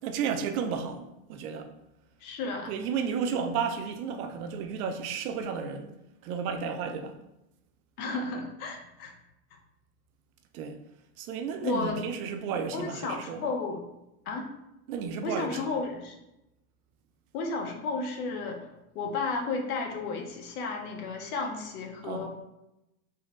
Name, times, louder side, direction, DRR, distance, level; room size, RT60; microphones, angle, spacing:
voice 1, 0.0-1.7 2.7-5.9 6.2-7.2 10.5-10.8 11.2-13.4 14.9-15.7 22.0-22.3, right 6 dB, 80° right, 0.5 m, -32 dB
voice 2, 2.2-2.7 8.0-9.1 11.6-12.0 12.7-13.8 14.3-14.5 15.2-16.2 17.3-18.7 18.9-22.3, left 3 dB, 85° left, 0.7 m, -33 dB
3.7 x 2.1 x 2.4 m
supercardioid pair, 140°, 43 cm